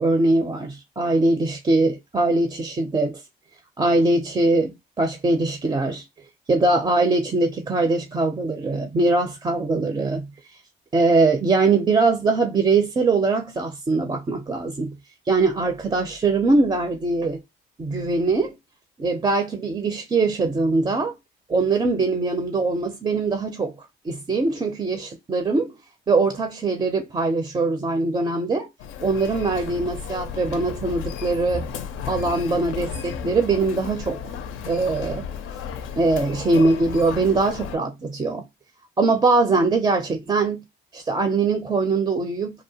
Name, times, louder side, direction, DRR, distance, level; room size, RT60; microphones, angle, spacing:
voice 1, 0.0-3.2 3.8-6.0 6.5-10.3 10.9-14.9 15.3-17.4 17.8-18.6 19.0-21.1 21.5-23.7 24.0-25.8 26.1-28.7 29.0-31.7 32.1-34.3 34.7-35.3 36.0-38.4 39.0-40.6 40.9-42.5, right 3 dB, 25° right, 0.4 m, -22 dB
Human voice, 28.8-37.8, left 7 dB, 90° left, 0.4 m, -34 dB
2.7 x 2.1 x 2.7 m
cardioid pair, 90°, 20 cm